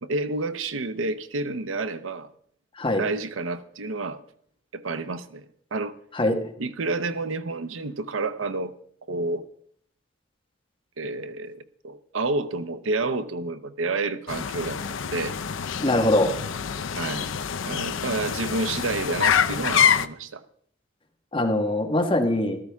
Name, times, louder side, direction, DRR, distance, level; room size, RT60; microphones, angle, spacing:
voice 1, 0.0-2.3 3.0-4.2 4.7-5.4 5.7-5.9 6.6-8.7 9.1-9.4 11.0-14.8 15.1-15.3 16.9-17.3 17.6-20.4, right 3 dB, 90° right, 12 dB, 0.7 m, -29 dB
sound 1, 14.3-20.1, left 7 dB, 75° left, 0.5 m, -26 dB
voice 2, 15.8-16.3 21.3-22.6, left 1 dB, 25° left, 2 dB, 1.5 m, -22 dB
13.5 x 13.5 x 3.5 m, 0.64 s
head